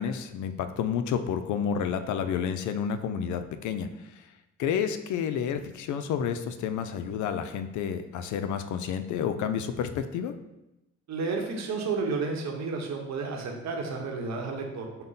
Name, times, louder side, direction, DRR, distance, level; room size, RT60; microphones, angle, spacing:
voice 1, 0.0-4.3 4.6-10.3, left 7 dB, 75° left, 9 dB, 0.5 m, -30 dB
voice 2, 11.1-14.9, right 4 dB, 60° right, 1 dB, 1.0 m, -31 dB
5.4 x 2.1 x 3.9 m, 0.92 s
cardioid pair, 90°, 30 cm